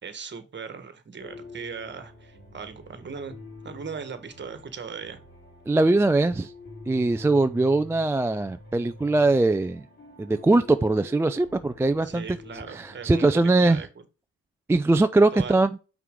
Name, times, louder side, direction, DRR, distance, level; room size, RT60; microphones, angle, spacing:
voice 1, 0.0-3.3 3.6-5.2 12.0-13.9 15.3-15.6, right 6 dB, 35° right, 1.5 m, -38 dB
sound 1, 1.2-13.5, left 3 dB, 35° left, 3.5 m, -47 dB
voice 2, 5.7-6.5 6.9-9.8 10.2-12.2 12.7-13.8 14.7-15.7, right 2 dB, 10° right, 0.3 m, -21 dB
5.7 x 4.7 x 3.7 m
cardioid pair, 90°, 30 cm